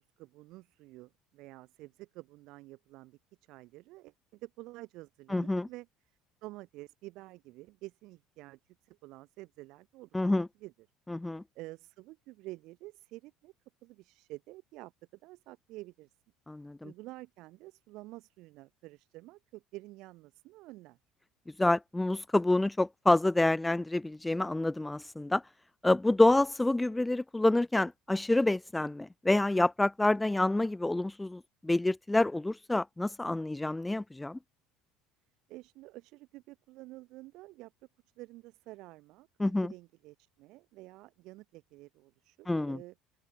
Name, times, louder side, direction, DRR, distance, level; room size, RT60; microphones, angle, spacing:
voice 1, 0.0-3.2 3.5-5.9 6.4-10.7 11.6-13.5 13.8-14.9 15.2-16.1 16.8-21.0 35.5-37.7 38.2-42.9, right 19 dB, 60° right, 7.0 m, -49 dB
voice 2, 5.3-5.7 10.1-10.5 11.1-11.4 16.5-16.9 21.6-25.4 25.8-34.4 39.4-39.7 42.5-42.8, left 2 dB, 5° left, 1.0 m, -28 dB
open air
cardioid pair, 160°, 0 cm